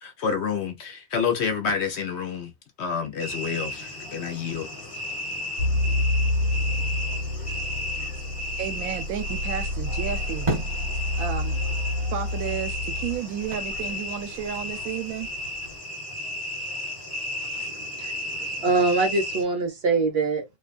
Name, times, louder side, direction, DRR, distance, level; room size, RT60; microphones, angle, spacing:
voice 1, 0.0-2.5 2.8-4.7, left 6 dB, 60° left, 0.8 m, -28 dB
sound 1, 3.2-19.4, left 1 dB, 45° left, 1.2 m, -34 dB
sound 2, 5.6-13.2, left 1 dB, 80° left, 1.0 m, -28 dB
voice 2, 8.6-10.5 11.2-11.6 12.1-15.3, right 9 dB, 85° right, 1.0 m, -32 dB
sound 3, 9.8-15.8, right 1 dB, 25° right, 1.3 m, -37 dB
voice 3, 17.5-20.4, right 3 dB, 55° right, 0.9 m, -24 dB
2.5 x 2.2 x 2.3 m
omnidirectional pair, 1.4 m